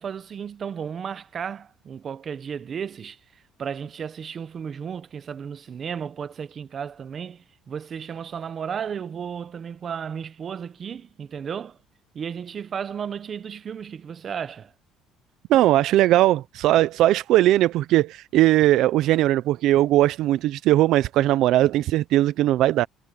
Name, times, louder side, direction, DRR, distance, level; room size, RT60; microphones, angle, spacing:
voice 1, 0.0-11.8 12.1-14.7, right 7 dB, 40° right, 1.0 m, -34 dB
voice 2, 15.5-22.9, right 14 dB, 70° right, 0.5 m, -19 dB
cardioid pair, 125°, 0 cm